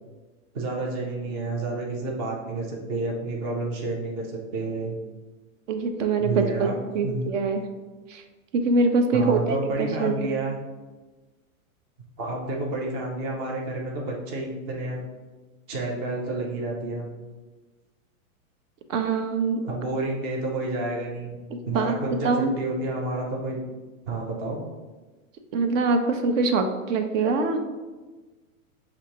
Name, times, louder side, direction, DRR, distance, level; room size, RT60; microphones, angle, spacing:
voice 1, 0.5-5.0 6.2-6.8 7.0-7.3 9.1-10.6 12.2-15.0 15.7-17.1 19.6-21.4 21.6-23.6 24.1-24.6, right 2 dB, 20° right, -1 dB, 0.3 m, -30 dB
voice 2, 5.7-7.6 8.1-8.2 8.5-10.4 18.9-19.6 21.7-22.5 25.5-27.6, right 3 dB, 65° right, 6 dB, 0.7 m, -24 dB
5.9 x 2.6 x 2.8 m, 1.2 s
hypercardioid pair, 135°, 42 cm